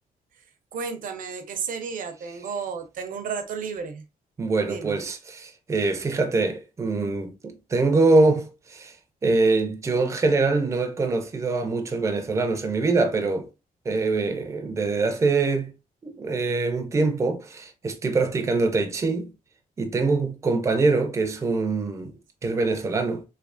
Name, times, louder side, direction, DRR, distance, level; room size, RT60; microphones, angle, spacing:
voice 1, 0.7-4.0 4.6-5.0, right 6 dB, 65° right, 0.6 m, -32 dB
voice 2, 4.4-8.9 9.2-13.5 13.9-15.7 16.0-19.3 19.8-23.2, right 3 dB, 20° right, 0.4 m, -24 dB
3.2 x 3.2 x 2.4 m
wide cardioid pair, 170°, 15 cm